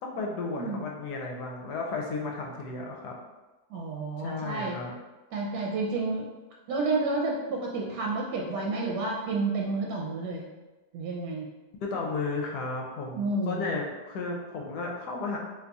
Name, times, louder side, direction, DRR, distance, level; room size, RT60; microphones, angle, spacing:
voice 1, 0.0-3.1 4.2-4.9 11.8-15.4, left 3 dB, 80° left, 0 dB, 1.2 m, -33 dB
voice 2, 3.7-4.8 5.3-6.3 6.7-10.5 10.9-11.5 13.1-13.7, right 3 dB, 80° right, -1 dB, 1.1 m, -30 dB
2.9 x 2.3 x 3.8 m, 1.1 s
omnidirectional pair, 1.8 m